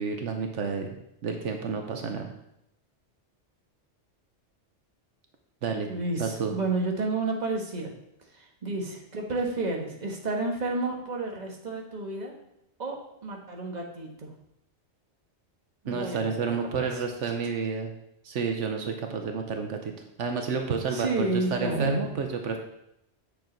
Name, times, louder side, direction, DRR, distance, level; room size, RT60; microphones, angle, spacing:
voice 1, 0.0-2.3 5.6-5.9 6.2-6.6 15.9-17.9 18.2-19.9 20.2-22.6, right 5 dB, 80° right, 4 dB, 1.1 m, -30 dB
voice 2, 5.9-7.9 8.3-12.3 12.8-14.3 15.8-16.9 20.9-22.1, right 2 dB, 35° right, 1 dB, 1.4 m, -31 dB
7.7 x 6.9 x 3.9 m, 0.81 s
omnidirectional pair, 1.2 m